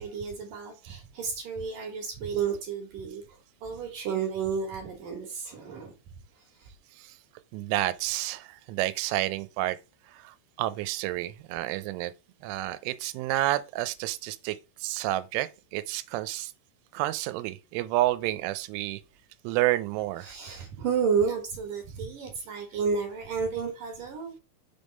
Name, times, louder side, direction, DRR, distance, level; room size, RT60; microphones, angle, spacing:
voice 1, 0.0-3.2 3.6-5.9 20.2-24.4, right 6 dB, 60° right, 2.6 m, -31 dB
voice 2, 7.5-9.8 10.1-12.1 12.4-16.5 16.9-19.0 19.4-20.3, right 15 dB, 85° right, 3.1 m, -30 dB
6.6 x 3.6 x 5.2 m
omnidirectional pair, 5.5 m